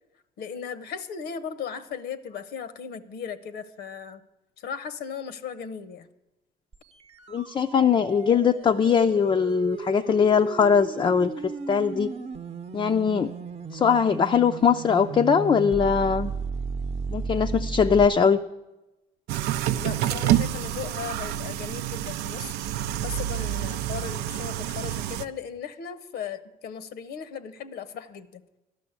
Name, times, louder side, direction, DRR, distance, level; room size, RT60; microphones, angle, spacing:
voice 1, 0.4-4.2 4.6-6.1 19.7-22.5 23.0-28.4, left 7 dB, 70° left, 13 dB, 0.8 m, -37 dB
sound 1, 6.7-18.1, right 5 dB, 35° right, 0.8 m, -35 dB
voice 2, 7.3-12.1 12.7-13.3 13.7-16.3 17.1-18.4, left 6 dB, 25° left, 6 dB, 0.5 m, -21 dB
sound 2, 19.3-25.2, right 12 dB, 85° right, 0.5 m, -28 dB
12.0 x 6.2 x 9.5 m, 0.99 s
cardioid pair, 110°, 17 cm